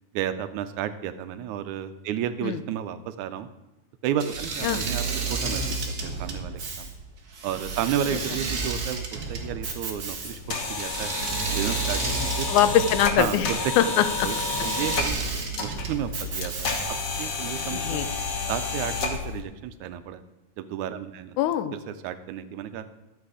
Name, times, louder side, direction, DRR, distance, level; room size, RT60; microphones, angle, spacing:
voice 1, 0.1-3.5 4.0-5.0 5.3-6.9 7.4-11.1 11.5-12.0 12.4-12.5 13.2-13.6 14.2-14.4 14.6-15.2 15.6-16.8 17.1-18.1 18.5-20.2 20.6-21.4 21.7-22.9, right 10 dB, 85° right, 11 dB, 2.1 m, -32 dB
Engine / Mechanisms, 4.2-17.1, right 4 dB, 45° right, 1.2 m, -32 dB
sound 1, 10.2-19.4, left 4 dB, 60° left, 0.8 m, -31 dB
voice 2, 12.5-14.3 17.7-18.1 21.4-21.8, left 10 dB, 85° left, 12 dB, 2.1 m, -23 dB
12.0 x 8.3 x 4.9 m, 1.0 s
omnidirectional pair, 3.4 m